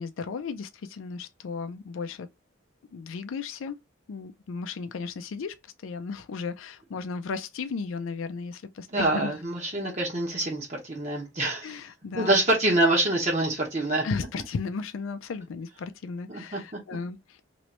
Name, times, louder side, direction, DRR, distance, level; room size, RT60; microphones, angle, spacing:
voice 1, 0.0-2.3 2.9-3.8 4.1-9.4 11.6-12.4 14.0-17.4, left 4 dB, 85° left, 0.4 m, -35 dB
voice 2, 8.9-11.7 12.2-14.0 16.3-16.8, right 2 dB, 35° right, 1.0 m, -26 dB
3.0 x 3.0 x 2.9 m
head